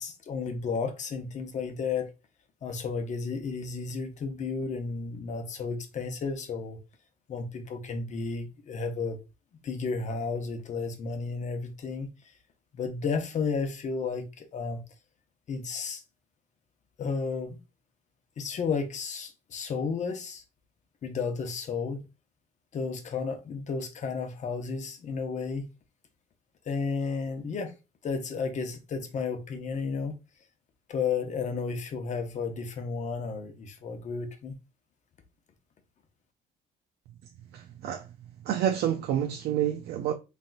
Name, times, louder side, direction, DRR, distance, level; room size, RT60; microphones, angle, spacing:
voice 1, 0.0-2.1 2.6-6.8 7.3-9.2 9.6-12.1 12.7-14.8 15.5-16.0 17.0-17.6 18.4-20.4 21.0-22.0 22.7-25.7 26.6-27.7 28.0-30.2 30.9-34.5, left 5 dB, 45° left, 0.9 m, -32 dB
voice 2, 37.5-38.1 38.4-40.1, right 10 dB, 70° right, 0.5 m, -28 dB
3.9 x 3.4 x 2.3 m
cardioid pair, 110°, 17 cm